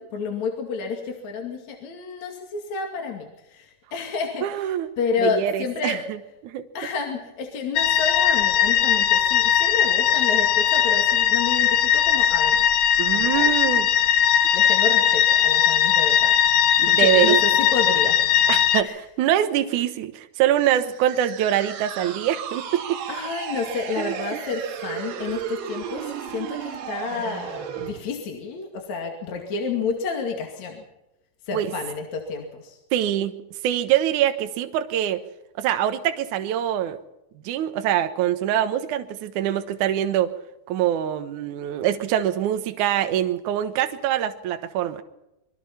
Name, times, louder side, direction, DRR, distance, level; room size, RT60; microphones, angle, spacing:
voice 1, 0.0-6.0 6.7-12.7 13.1-13.5 14.5-16.4 16.9-18.5 18.8-18.9 23.1-30.8 31.5-32.8, left 5 dB, 50° left, 2 dB, 3.5 m, -30 dB
voice 2, 4.4-4.9 5.2-6.2 6.4-6.7 13.0-13.9 16.8-17.4 18.5-23.0 24.0-24.4 31.5-31.7 32.9-35.2 35.6-37.0 37.4-40.4 40.7-45.0, right 11 dB, 65° right, 8 dB, 2.4 m, -24 dB
sound 1, 7.8-18.8, left 9 dB, 70° left, 1.9 m, -19 dB
sound 2, 20.6-28.0, right 8 dB, 85° right, 3.7 m, -34 dB
26.5 x 22.5 x 4.4 m, 0.90 s
omnidirectional pair, 4.4 m